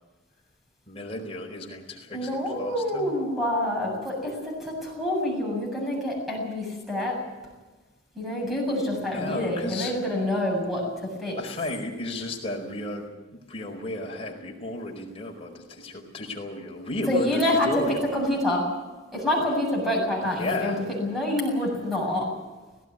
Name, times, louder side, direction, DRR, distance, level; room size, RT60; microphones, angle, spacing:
voice 1, 0.9-3.1 8.9-9.9 11.4-18.1 20.4-20.8, left 1 dB, 30° left, 0 dB, 4.6 m, -33 dB
voice 2, 2.1-7.2 8.1-11.4 17.1-17.8 18.1-18.7 19.1-22.3, left 1 dB, ahead, -1 dB, 7.7 m, -27 dB
18.5 x 16.5 x 9.7 m, 1.2 s
head